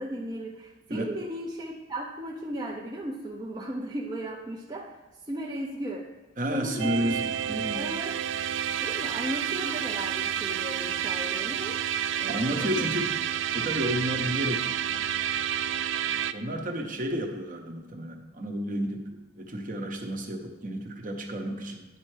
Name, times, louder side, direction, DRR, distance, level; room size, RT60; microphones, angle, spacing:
voice 1, 0.0-5.0 5.3-6.1 6.5-7.1 7.7-8.2 8.8-11.8 12.2-12.9, right 1 dB, 20° right, -2 dB, 0.6 m, -36 dB
voice 2, 6.4-7.9 12.3-13.1 13.5-15.1 16.3-19.1 19.3-21.9, equal, 40° right, 3 dB, 0.9 m, -31 dB
sound 1, 6.8-16.3, right 9 dB, 65° right, 0.3 m, -30 dB
10.0 x 4.4 x 4.9 m, 1.2 s
head